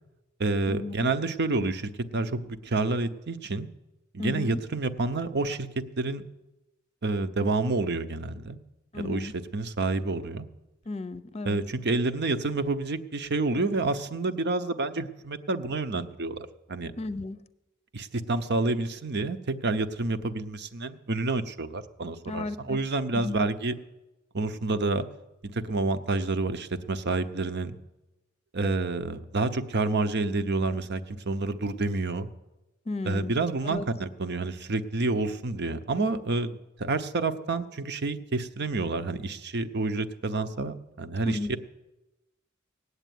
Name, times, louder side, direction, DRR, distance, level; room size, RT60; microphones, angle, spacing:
voice 1, 0.4-3.7 4.1-5.7 6.0-6.2 7.0-8.6 8.9-10.5 11.4-16.9 17.9-23.7 24.3-25.1 25.4-27.8 28.5-32.3 33.0-41.6, right 3 dB, 55° right, 11 dB, 0.9 m, -29 dB
voice 2, 4.2-4.6 8.9-9.3 10.9-11.6 17.0-17.4 22.3-22.8 23.1-23.5 32.9-33.3 33.7-33.8 41.2-41.6, left 2 dB, 30° left, 14 dB, 0.7 m, -34 dB
18.5 x 8.1 x 9.3 m, 1.0 s
head